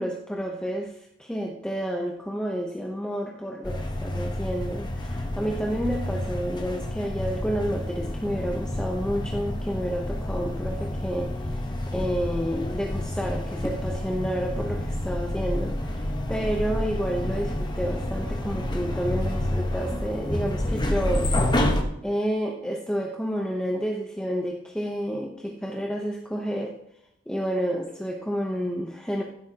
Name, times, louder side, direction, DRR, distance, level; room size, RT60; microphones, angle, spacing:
voice 1, 0.0-11.6 11.9-21.3 22.0-26.7 27.3-29.2, equal, 5° left, 0 dB, 0.9 m, -30 dB
sound 1, 3.6-21.8, left 1 dB, 25° left, 1.2 m, -29 dB
15.0 x 8.1 x 3.0 m, 0.78 s
head